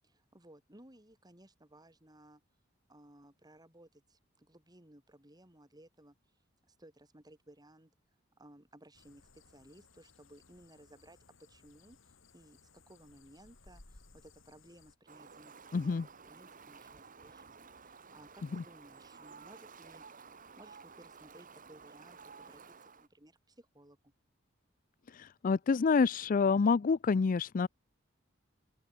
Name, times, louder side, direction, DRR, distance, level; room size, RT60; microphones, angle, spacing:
voice 1, 0.1-2.4 2.9-6.2 6.7-7.9 8.4-11.2 11.5-16.0 16.2-20.1 20.6-24.1, right 1 dB, 20° right, 5.5 m, -59 dB
sound 1, 8.9-15.0, left 3 dB, 80° left, 2.9 m, -62 dB
Fowl, 15.1-23.1, right 5 dB, 45° right, 2.3 m, -54 dB
voice 2, 15.7-16.0 25.1-27.7, left 5 dB, 45° left, 0.4 m, -27 dB
open air
head